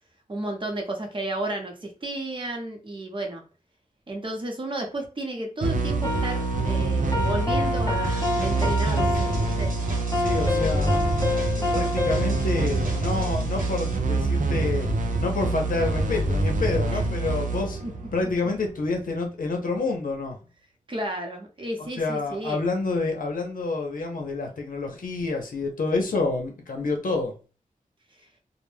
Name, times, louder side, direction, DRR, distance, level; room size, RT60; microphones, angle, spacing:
voice 1, 0.3-3.4 4.1-9.7 10.6-10.8 11.6-11.8 16.9-17.0 17.8-17.9 18.2-18.5 20.9-22.6 28.2-28.3, right 1 dB, 35° right, 0.8 m, -33 dB
sound 1, 5.6-18.9, right 2 dB, 70° right, 0.5 m, -26 dB
sound 2, 6.0-13.3, left 2 dB, 25° left, 0.6 m, -29 dB
sound 3, 8.0-14.0, right 1 dB, 90° right, 0.8 m, -40 dB
voice 2, 10.1-11.0 11.7-14.9 15.2-17.8 18.1-20.4 21.8-27.3, left 3 dB, 85° left, 0.6 m, -28 dB
2.1 x 2.1 x 3.1 m
wide cardioid pair, 70°, 14 cm